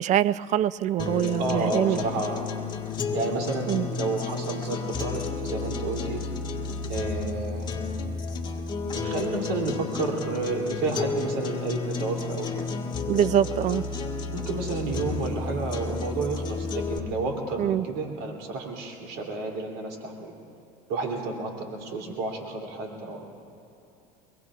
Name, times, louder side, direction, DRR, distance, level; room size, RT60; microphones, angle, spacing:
voice 1, 0.0-2.0 3.7-3.9 13.1-13.8 17.6-17.9, right 11 dB, 40° right, 18 dB, 0.4 m, -24 dB
sound 1, 1.0-17.0, left 4 dB, 25° left, 1.7 m, -32 dB
voice 2, 1.4-2.5 3.1-6.3 6.9-7.7 9.0-12.6 13.6-13.7 14.3-20.3 20.9-23.3, right 3 dB, 80° right, 0 dB, 3.0 m, -31 dB
23.0 x 23.0 x 2.5 m, 2.8 s
supercardioid pair, 105°, 19 cm